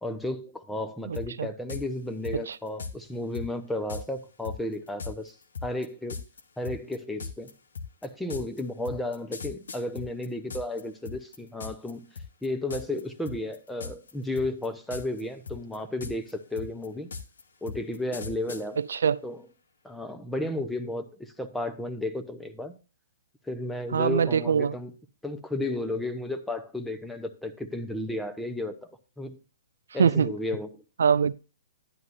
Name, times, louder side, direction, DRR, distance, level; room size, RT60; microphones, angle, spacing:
voice 1, 0.0-5.3 5.6-6.2 6.6-7.5 8.0-12.1 12.4-17.1 17.6-18.8 19.2-19.4 19.8-22.8 23.4-24.9 25.2-28.8 29.2-29.4 29.9-30.8, left 1 dB, 5° left, 0.8 m, -33 dB
sound 1, 1.1-1.3 1.7-1.8 2.2-2.9 3.3-3.5 3.9-4.0 4.4-10.8 11.1-11.9 12.2-12.5 12.7-13.0 13.3-14.1 14.4-15.2 15.5-18.6, left 5 dB, 75° left, 1.1 m, -38 dB
voice 2, 1.1-1.5 2.3-2.6 18.8-19.2 23.9-24.7 30.0-30.3 31.0-31.3, right 7 dB, 75° right, 0.3 m, -23 dB
11.0 x 9.4 x 2.6 m
hypercardioid pair, 125°, 0 cm